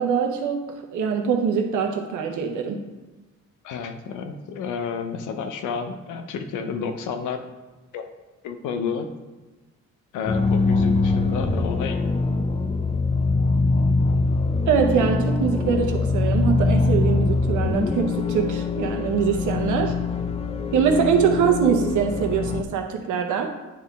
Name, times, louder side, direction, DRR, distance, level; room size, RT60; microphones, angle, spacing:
voice 1, 0.0-2.8 14.7-19.9 20.7-23.5, right 7 dB, 80° right, 4 dB, 1.0 m, -23 dB
voice 2, 3.6-7.4 7.9-8.1 8.4-9.1 10.1-12.0, left 6 dB, 90° left, 7 dB, 0.7 m, -30 dB
sound 1, 10.3-22.6, left 3 dB, 20° left, 0.5 m, -23 dB
9.9 x 3.8 x 3.6 m, 1.2 s
cardioid pair, 90°, 30 cm